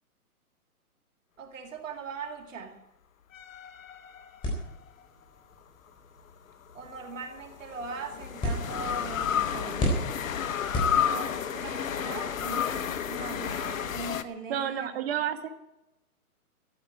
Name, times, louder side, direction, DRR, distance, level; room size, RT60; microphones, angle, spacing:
voice 1, 1.4-2.8 6.7-10.0 11.1-14.9, right 4 dB, 55° right, 5 dB, 2.2 m, -40 dB
sound 1, 3.3-4.8 6.7-14.2, left 8 dB, 60° left, 1.0 m, -31 dB
sound 2, 4.4-11.5, left 1 dB, 10° left, 3.7 m, -36 dB
voice 2, 14.5-15.5, right 10 dB, 40° right, 8 dB, 1.3 m, -30 dB
14.0 x 7.3 x 9.5 m, 0.91 s
hypercardioid pair, 155°, 45 cm